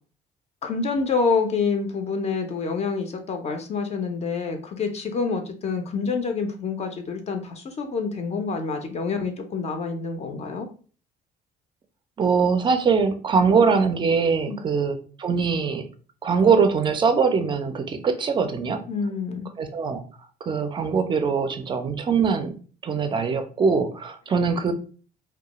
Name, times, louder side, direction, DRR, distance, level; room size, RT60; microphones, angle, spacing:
voice 1, 0.6-10.7 14.5-14.6 18.9-19.5, left 4 dB, 40° left, 5 dB, 0.4 m, -27 dB
voice 2, 12.2-15.9 16.2-18.8 19.6-20.0 20.4-22.6 22.8-24.7, right 5 dB, 30° right, 8 dB, 0.4 m, -22 dB
2.3 x 2.2 x 2.8 m, 0.40 s
cardioid pair, 110°, 17 cm